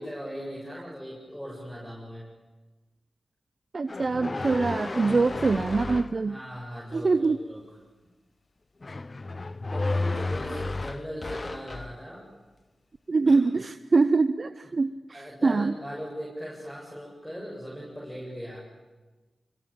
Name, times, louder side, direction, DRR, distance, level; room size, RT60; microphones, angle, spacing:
voice 1, 0.0-2.3 6.1-7.6 9.7-12.3 13.3-13.4 15.1-18.6, equal, 5° left, -4 dB, 7.8 m, -39 dB
voice 2, 3.7-6.4 6.9-7.4 13.1-15.8, right 3 dB, 50° right, 11 dB, 0.8 m, -24 dB
sound 1, 3.9-6.2 8.8-12.0, left 2 dB, 40° left, 0.8 m, -32 dB
25.0 x 24.0 x 8.9 m, 1.2 s
cardioid pair, 50°, 0 cm